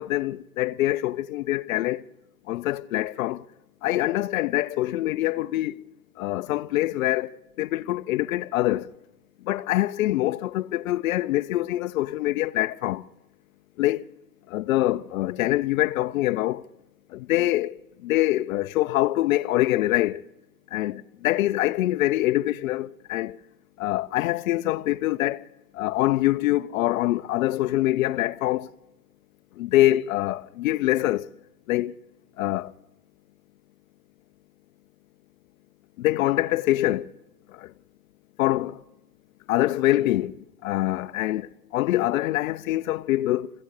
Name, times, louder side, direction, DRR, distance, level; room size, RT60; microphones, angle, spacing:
voice 1, 0.0-2.0 2.5-3.4 3.8-5.8 6.2-7.3 7.6-8.9 9.5-13.0 13.8-14.0 14.5-16.6 17.1-17.7 18.0-20.2 20.7-23.4 23.8-25.4 25.7-28.7 29.6-31.3 31.7-31.9 32.4-32.7 36.0-37.1 37.5-37.7 38.4-38.8 39.5-43.5, left 16 dB, 55° left, 0.7 m, -24 dB
24.5 x 16.0 x 6.5 m
hypercardioid pair, 140°, 49 cm